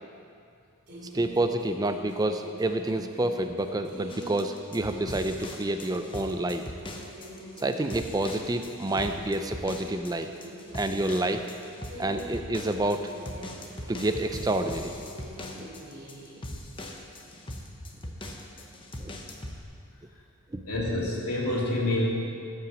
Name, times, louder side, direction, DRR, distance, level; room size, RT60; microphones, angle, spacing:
sound 1, 0.9-4.6 4.9-8.5 8.9-12.6 12.9-16.5, right 1 dB, 50° right, 2.6 m, -45 dB
voice 1, 1.1-6.7 7.6-10.3 10.7-11.4 12.0-13.1 13.9-15.0 15.5-15.7 19.0-19.1 20.5-20.6, right 1 dB, 15° right, 7 dB, 0.4 m, -28 dB
sound 2, 4.1-19.6, left 1 dB, 20° left, 0.9 m, -41 dB
voice 2, 20.7-22.1, left 2 dB, 85° left, -4 dB, 2.7 m, -27 dB
14.5 x 5.9 x 7.4 m, 2.4 s
head